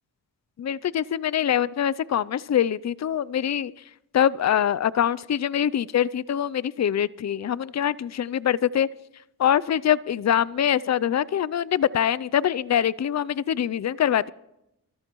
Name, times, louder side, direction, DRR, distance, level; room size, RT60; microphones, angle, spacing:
voice 1, 0.6-3.7 4.1-8.9 9.4-14.3, left 9 dB, 40° left, 20 dB, 0.5 m, -24 dB
25.0 x 13.5 x 3.1 m, 0.86 s
cardioid pair, 45°, 43 cm